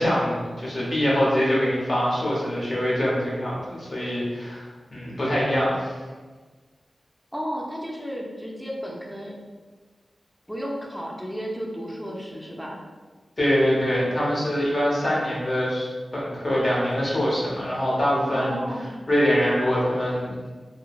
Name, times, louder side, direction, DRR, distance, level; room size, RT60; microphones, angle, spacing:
voice 1, 0.0-5.9 13.4-18.6 19.1-20.4, equal, 45° left, -6 dB, 0.9 m, -24 dB
voice 2, 7.3-9.3 10.5-12.8 18.3-18.9, equal, 5° left, -2 dB, 0.5 m, -33 dB
3.0 x 2.0 x 2.3 m, 1.4 s
cardioid pair, 45°, 0 cm